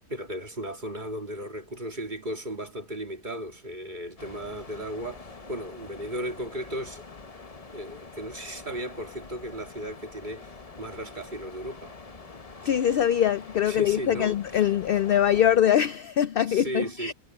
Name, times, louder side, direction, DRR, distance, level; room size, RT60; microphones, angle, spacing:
voice 1, 0.1-7.0 7.7-11.9 13.7-14.4 16.5-17.1, equal, 35° right, 2.8 m, -35 dB
sound 1, 4.2-15.6, left 4 dB, 30° left, 1.0 m, -45 dB
voice 2, 12.6-17.1, left 10 dB, 65° left, 0.5 m, -23 dB
omnidirectional pair, 1.4 m